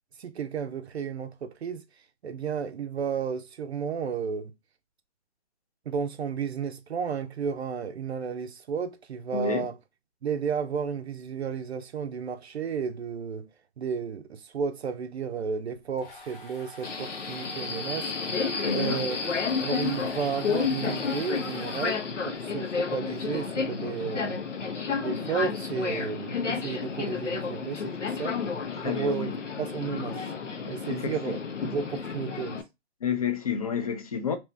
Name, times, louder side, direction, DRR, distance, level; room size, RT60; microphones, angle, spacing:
voice 1, 0.2-1.8 2.2-4.5 5.9-9.8 10.2-13.5 13.8-18.1 18.7-19.2 19.6-24.4 24.9-28.4 28.8-29.3 29.6-30.3 30.7-32.6, right 6 dB, 65° right, 0.5 m, -32 dB
voice 2, 9.3-9.7 18.5-19.0 28.7-29.3 30.9-31.4 33.0-34.4, left 6 dB, 35° left, 0.5 m, -30 dB
sound 1, 15.7-22.4, left 1 dB, 50° left, 1.0 m, -46 dB
Subway metro underground, 16.8-32.6, left 5 dB, 90° left, 0.8 m, -31 dB
2.9 x 2.6 x 3.3 m
hypercardioid pair, 155°, 35 cm